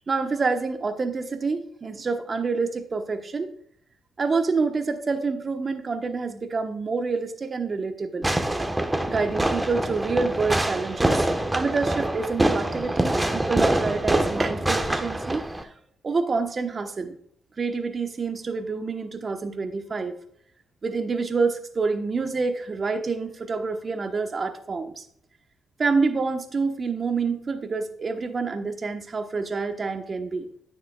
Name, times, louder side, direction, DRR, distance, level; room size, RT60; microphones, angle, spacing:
voice 1, 0.1-3.5 4.2-8.3 9.1-15.5 16.0-17.2 17.6-20.1 20.8-25.0 25.8-30.5, right 4 dB, 40° right, 7 dB, 1.1 m, -27 dB
Fireworks, 8.2-15.6, right 1 dB, 15° right, 1.1 m, -25 dB
10.0 x 10.0 x 2.3 m, 0.67 s
hypercardioid pair, 45°, 0 cm